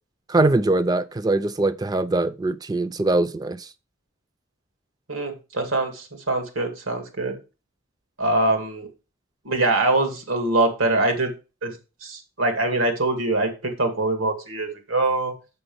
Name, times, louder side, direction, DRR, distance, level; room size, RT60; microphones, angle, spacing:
voice 1, 0.3-3.7, right 2 dB, 20° right, 0.4 m, -22 dB
voice 2, 5.1-7.4 8.2-8.9 9.4-11.3 11.6-11.8 12.0-15.4, right 2 dB, 90° right, 2.1 m, -23 dB
6.9 x 6.1 x 5.3 m
head